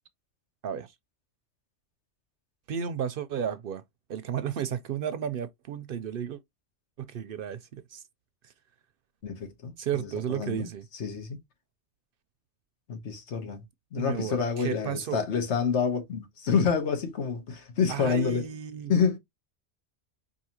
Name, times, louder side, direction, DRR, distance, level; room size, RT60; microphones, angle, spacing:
voice 1, 0.6-0.9 2.7-3.8 4.1-6.4 7.0-8.0 8.4-8.5 9.8-10.9 14.0-15.2 17.9-18.9, right 8 dB, 65° right, 0.7 m, -33 dB
voice 2, 9.2-9.7 10.0-10.7 11.0-11.4 12.9-13.6 13.9-18.4 18.9-19.2, left 6 dB, 80° left, 1.4 m, -28 dB
4.7 x 2.8 x 2.8 m
omnidirectional pair, 1.2 m